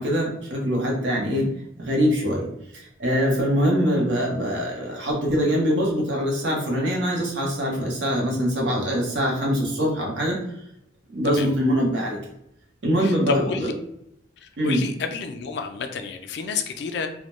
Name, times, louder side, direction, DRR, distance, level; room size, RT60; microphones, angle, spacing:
voice 1, 0.0-1.5 1.8-2.5 2.7-10.4 11.1-12.2 12.8-13.7 14.6-14.9, equal, 65° right, -2 dB, 0.7 m, -23 dB
voice 2, 13.0-13.7 14.6-17.1, left 5 dB, 60° left, 6 dB, 0.3 m, -30 dB
2.2 x 2.0 x 2.9 m, 0.76 s
head